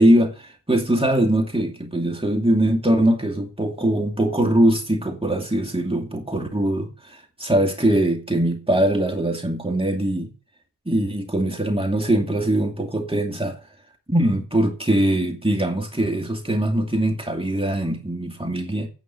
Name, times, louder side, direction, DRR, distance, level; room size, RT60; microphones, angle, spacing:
voice 1, 0.0-10.3 10.9-13.6 14.1-18.9, right 1 dB, 10° right, 2.4 m, -21 dB
9.2 x 8.7 x 8.7 m
wide cardioid pair, 60°, 43 cm